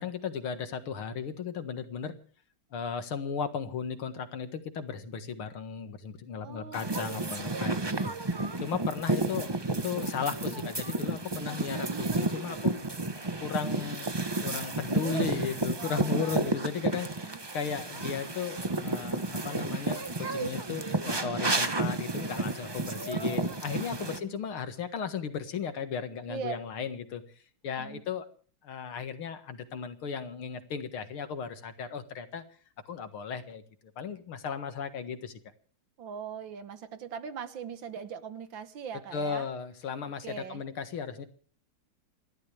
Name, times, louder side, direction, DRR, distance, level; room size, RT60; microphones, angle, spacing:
voice 1, 0.0-2.2 2.7-8.2 8.6-9.6 9.8-12.8 13.4-14.1 14.4-27.2 27.6-28.3 28.6-32.4 32.9-33.6 34.0-35.3 39.1-41.3, left 6 dB, 80° left, 9 dB, 2.5 m, -36 dB
voice 2, 6.4-7.9 15.0-15.3 15.8-16.5 17.2-17.4 24.0-24.4 26.3-26.5 27.8-28.0 36.0-39.5 40.2-40.6, right 7 dB, 65° right, 11 dB, 1.9 m, -41 dB
sound 1, 6.7-24.2, right 2 dB, 30° right, 0.4 m, -31 dB
28.5 x 12.5 x 3.4 m, 0.43 s
omnidirectional pair, 2.3 m